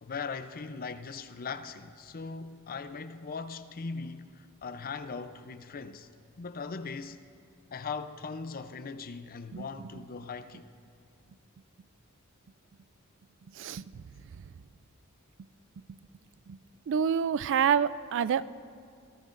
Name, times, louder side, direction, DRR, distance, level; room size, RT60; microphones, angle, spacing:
voice 1, 0.0-6.1 6.4-7.2 7.7-10.7, left 4 dB, 45° left, 0.5 m, -39 dB
voice 2, 13.5-14.0 14.4-14.5 16.5-16.6 16.9-18.5, right 7 dB, 60° right, 0.3 m, -28 dB
25.5 x 17.0 x 2.5 m
head